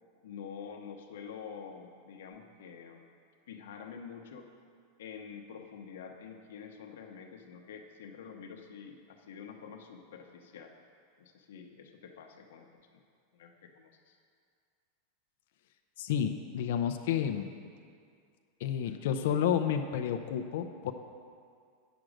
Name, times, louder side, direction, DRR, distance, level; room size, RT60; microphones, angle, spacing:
voice 1, 0.2-3.1 3.5-4.5 5.0-10.7 11.2-13.0 13.3-14.2, left 6 dB, 80° left, 3 dB, 0.9 m, -47 dB
voice 2, 16.0-17.5 18.6-20.9, left 9 dB, 60° left, 6 dB, 0.5 m, -30 dB
8.9 x 6.1 x 6.4 m, 2.2 s
supercardioid pair, 170°, 0 cm